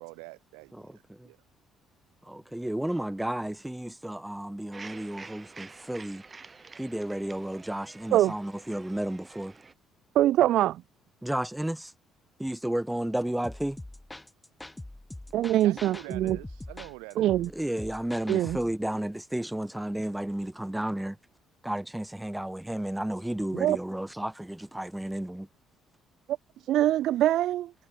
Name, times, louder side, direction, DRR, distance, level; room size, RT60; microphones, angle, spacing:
voice 1, 0.0-1.4 15.6-17.3, right 38 dB, 85° right, 3.7 m, -45 dB
voice 2, 0.7-1.3 2.3-6.2 6.8-9.5 11.2-11.9 12.4-13.8 17.5-21.2 21.6-25.5, right 1 dB, 5° right, 2.2 m, -32 dB
sound 1, 4.7-9.7, right 4 dB, 30° right, 7.5 m, -49 dB
voice 3, 10.1-10.8 15.3-16.4 17.2-17.5 18.3-18.6 23.5-23.8 26.6-27.7, right 13 dB, 70° right, 0.7 m, -23 dB
sound 2, 13.4-18.8, left 1 dB, 10° left, 7.2 m, -43 dB
supercardioid pair, 65°, 0 cm